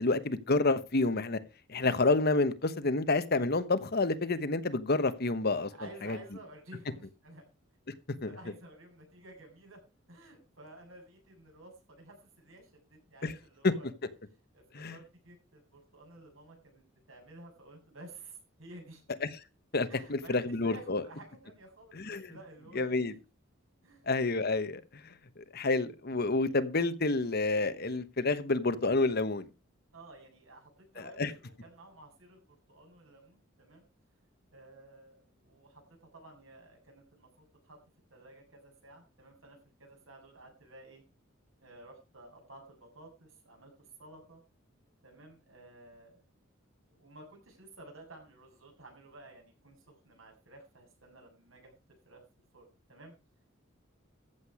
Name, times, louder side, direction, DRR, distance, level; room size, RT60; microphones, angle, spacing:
voice 1, 0.0-1.4 1.7-5.7 6.0-6.2 8.2-8.3 13.2-13.3 13.6-13.7 14.7-14.9 19.2-19.3 19.7-21.0 21.9-22.3 22.7-23.1 24.1-24.8 25.4-29.5 31.2-31.3, left 3 dB, 50° left, 1.2 m, -29 dB
voice 2, 5.7-7.4 8.2-9.8 10.1-13.9 14.2-19.0 19.9-23.2 23.8-24.1 29.9-33.9 34.2-34.3 34.5-37.3 37.6-37.8 38.1-41.0 41.6-44.4 45.0-46.2 46.9-51.8 52.1-52.2 52.5-53.1, right 2 dB, 90° right, 7.6 m, -53 dB
14.5 x 8.2 x 4.9 m
head